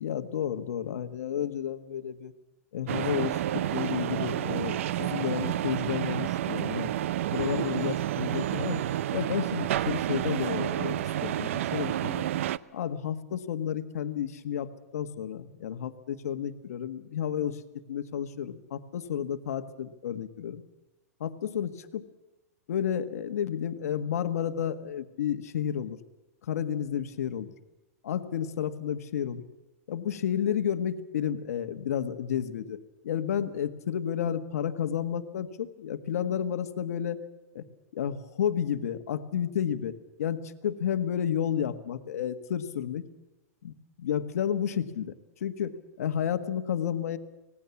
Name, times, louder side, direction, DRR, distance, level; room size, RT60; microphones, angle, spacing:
voice 1, 0.0-2.3 2.7-6.9 7.3-8.8 9.1-12.2 12.7-17.6 17.9-20.6 21.2-22.0 22.7-26.0 26.4-27.5 28.0-29.4 29.9-32.8 33.0-37.2 37.5-37.6 37.9-43.0 43.6-45.1 45.4-47.2, left 9 dB, 70° left, 10 dB, 1.6 m, -31 dB
sound 1, 2.9-12.6, right 12 dB, 55° right, 0.7 m, -30 dB
25.5 x 19.0 x 7.1 m, 1.1 s
supercardioid pair, 170°, 9 cm